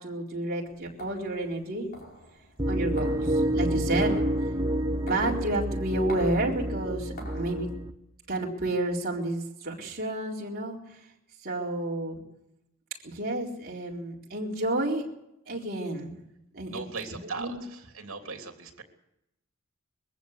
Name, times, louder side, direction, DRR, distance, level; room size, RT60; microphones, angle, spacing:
voice 1, 0.0-1.9 2.7-4.2 5.0-7.7 8.3-11.0 11.4-12.2 13.0-15.1 15.5-16.2 16.5-17.6, right 1 dB, 45° right, -2 dB, 4.1 m, -31 dB
sound 1, 0.7-7.6, left 1 dB, 45° left, 4.8 m, -47 dB
sound 2, 2.6-7.9, right 1 dB, 20° right, 1.1 m, -28 dB
voice 2, 16.7-18.8, right 4 dB, 70° right, 4 dB, 3.3 m, -38 dB
22.0 x 15.0 x 8.1 m, 0.85 s
head